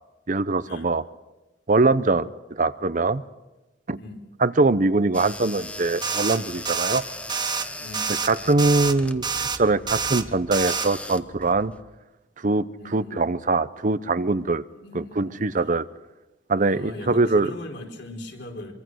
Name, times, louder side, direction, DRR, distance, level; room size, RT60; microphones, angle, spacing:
voice 1, 0.3-1.0 1.7-3.2 3.9-4.0 4.4-7.0 8.2-11.7 12.4-12.6 12.9-14.6 14.9-15.9 16.5-17.5, right 3 dB, 45° right, 14 dB, 0.8 m, -22 dB
sound 1, 5.1-11.8, left 1 dB, 5° left, 0.9 m, -39 dB
sound 2, 6.0-6.4 6.7-7.0 7.3-7.7 7.9-8.3 8.6-8.9 9.2-9.6 9.9-10.2 10.5-10.9, right 5 dB, 25° right, 1.3 m, -27 dB
voice 2, 7.8-8.1 12.8-13.2 14.7-15.4 16.6-18.7, left 1 dB, 65° left, 2 dB, 4.3 m, -40 dB
24.5 x 24.5 x 6.4 m, 1.0 s
head